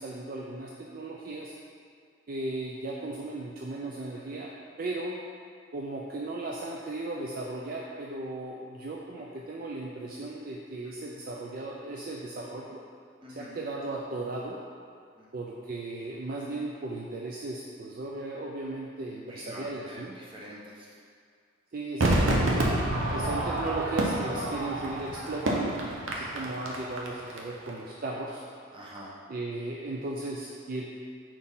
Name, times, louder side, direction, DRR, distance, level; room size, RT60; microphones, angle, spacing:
voice 1, 0.0-1.5 2.3-5.2 5.7-12.8 13.3-14.6 15.3-20.2 21.7-25.8 26.0-28.4 29.3-30.9, right 2 dB, 45° right, -2 dB, 0.4 m, -36 dB
voice 2, 19.3-21.0 28.7-29.1, equal, 25° right, -5 dB, 0.9 m, -45 dB
Crowd / Fireworks, 22.0-27.4 27.7-27.8, right 1 dB, 80° right, 0.8 m, -28 dB
4.3 x 4.3 x 5.4 m, 2.2 s
head